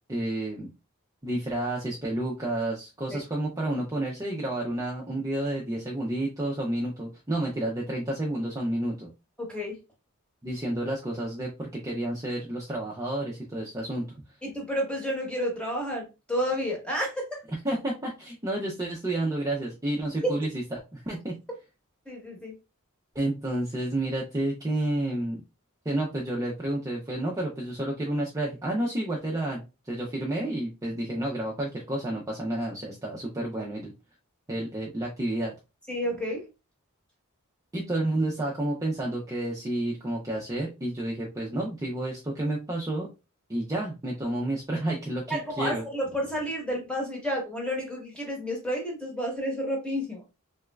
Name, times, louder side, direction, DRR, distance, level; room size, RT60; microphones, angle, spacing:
voice 1, 0.1-0.7 1.2-9.1 10.4-14.0 17.6-21.4 23.1-25.4 25.8-33.9 34.5-35.5 37.7-43.1 43.5-45.8, right 1 dB, 15° right, -3 dB, 0.5 m, -30 dB
voice 2, 9.4-9.8 14.4-17.4 20.2-20.3 22.1-22.5 35.9-36.4 45.3-50.2, equal, 5° left, -1 dB, 1.1 m, -30 dB
3.5 x 3.1 x 2.2 m, 0.27 s
head